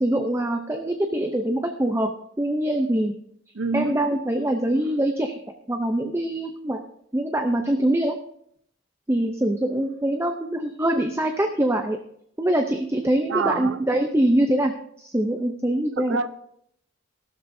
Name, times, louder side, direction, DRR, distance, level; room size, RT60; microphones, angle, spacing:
voice 1, 0.0-2.1 2.4-3.2 3.7-5.4 5.7-6.8 7.1-8.2 9.1-12.0 12.4-16.2, right 1 dB, 15° right, 5 dB, 0.6 m, -24 dB
voice 2, 3.5-4.0 13.3-13.8 16.0-16.3, right 4 dB, 85° right, 13 dB, 0.7 m, -26 dB
15.5 x 12.5 x 2.7 m, 0.69 s
head